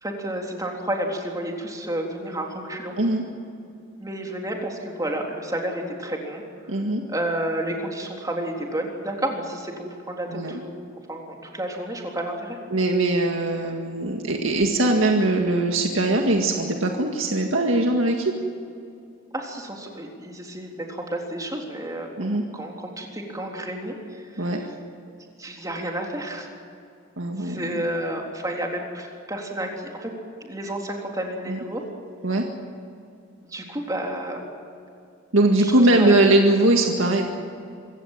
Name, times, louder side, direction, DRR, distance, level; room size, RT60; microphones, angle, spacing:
voice 1, 0.0-3.0 4.0-6.4 7.1-12.6 19.3-24.7 25.4-26.5 27.4-30.1 30.4-31.8 33.4-34.4 35.6-36.1, right 1 dB, 15° right, 0 dB, 3.7 m, -31 dB
voice 2, 6.7-7.0 10.3-10.5 12.7-18.3 22.2-22.4 24.4-24.6 27.2-27.8 31.5-31.6 32.2-32.5 35.3-37.3, right 2 dB, 75° right, 2 dB, 2.0 m, -21 dB
26.0 x 16.0 x 9.3 m, 2.5 s
head